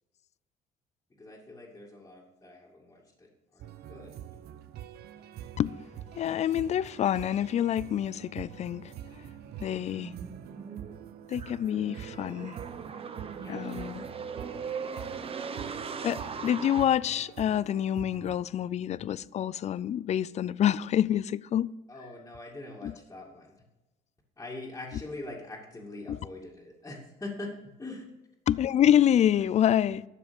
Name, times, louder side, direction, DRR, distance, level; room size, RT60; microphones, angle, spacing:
voice 1, 1.2-4.6 13.4-14.3 21.9-23.6 24.4-28.0, left 2 dB, 15° left, 2.4 m, -43 dB
sound 1, 3.6-18.4, right 11 dB, 70° right, 0.7 m, -46 dB
voice 2, 6.1-8.9 9.6-10.1 11.3-12.6 13.5-14.0 16.0-21.7 22.8-22.9 24.9-25.0 26.1-26.3 28.5-30.1, left 10 dB, 40° left, 0.4 m, -27 dB
sound 2, 9.4-16.9, right 6 dB, 35° right, 0.9 m, -39 dB
12.5 x 7.7 x 5.3 m
cardioid pair, 110°, 17 cm